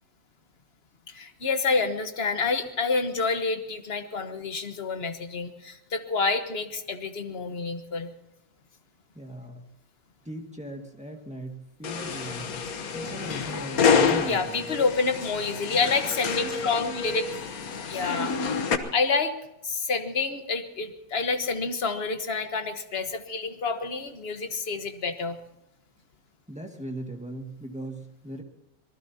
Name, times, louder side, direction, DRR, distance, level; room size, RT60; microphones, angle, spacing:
voice 1, 1.1-8.1 14.3-17.2 17.9-18.3 18.9-19.3 19.6-25.4, left 4 dB, 35° left, 7 dB, 1.4 m, -28 dB
voice 2, 9.2-9.7 10.3-12.7 12.9-14.7 26.5-28.4, right 1 dB, 5° right, 2 dB, 1.8 m, -38 dB
sound 1, 11.8-18.8, left 6 dB, 55° left, 1.5 m, -28 dB
26.0 x 19.5 x 2.8 m, 0.89 s
omnidirectional pair, 1.9 m